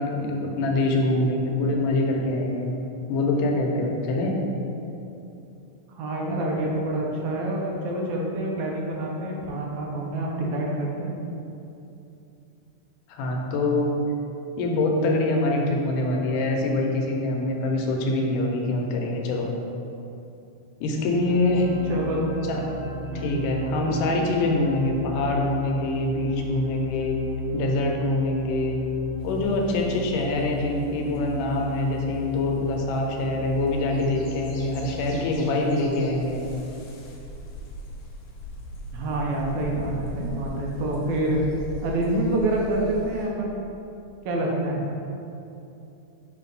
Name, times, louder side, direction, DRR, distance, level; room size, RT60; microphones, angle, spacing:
voice 1, 0.0-2.7 3.1-4.4 13.1-13.9 14.6-19.5 20.8-21.7 22.5-22.6 23.2-27.2 27.5-28.8 29.2-36.4, left 2 dB, 90° left, 0 dB, 2.3 m, -24 dB
voice 2, 5.9-11.1 21.9-22.2 23.1-23.5 38.9-41.4 41.8-43.6 44.3-44.8, right 1 dB, 80° right, -2 dB, 2.0 m, -27 dB
sound 1, 20.8-35.2, right 1 dB, 50° left, 1.9 m, -36 dB
sound 2, 29.2-43.3, left 1 dB, 70° left, 1.7 m, -41 dB
6.3 x 2.8 x 5.3 m, 2.8 s
omnidirectional pair, 3.6 m